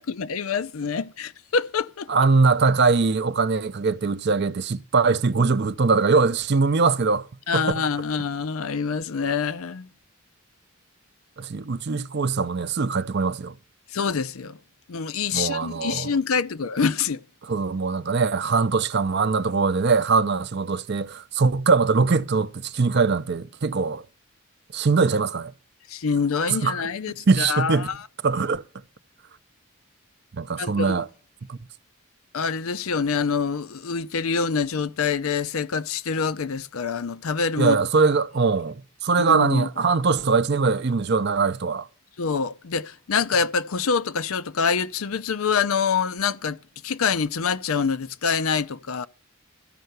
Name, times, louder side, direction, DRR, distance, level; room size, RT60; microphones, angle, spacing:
voice 1, 0.0-2.1 7.5-9.9 13.9-14.6 14.9-17.2 25.9-28.1 30.6-31.0 32.3-37.8 39.2-39.7 42.2-46.6 46.8-49.1, left 5 dB, 75° left, 0.6 m, -26 dB
voice 2, 2.1-7.3 7.5-7.6 11.4-13.5 15.3-16.1 17.5-24.0 24.7-25.5 26.5-26.8 27.3-27.9 28.2-28.6 30.3-31.1 31.5-31.6 37.6-41.9, right 4 dB, 50° right, 0.6 m, -22 dB
13.5 x 5.6 x 7.9 m
head